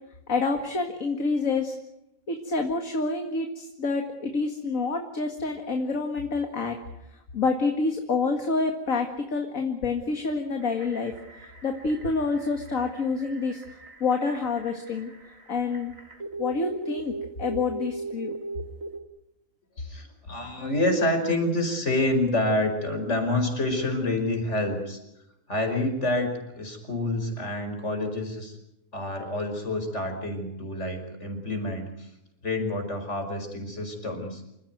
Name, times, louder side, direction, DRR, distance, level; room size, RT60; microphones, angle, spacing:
voice 1, 0.3-1.7 2.3-6.8 7.3-11.1 11.4-13.6 14.0-15.1 15.5-15.9 16.4-18.3, left 4 dB, 70° left, 4 dB, 2.4 m, -27 dB
sound 1, 10.6-19.0, right 3 dB, 70° right, 3.0 m, -39 dB
voice 2, 19.8-25.0 25.5-28.6 28.9-32.1 32.4-34.4, left 1 dB, 55° left, 6 dB, 5.5 m, -28 dB
27.5 x 15.5 x 9.4 m, 0.86 s
omnidirectional pair, 1.5 m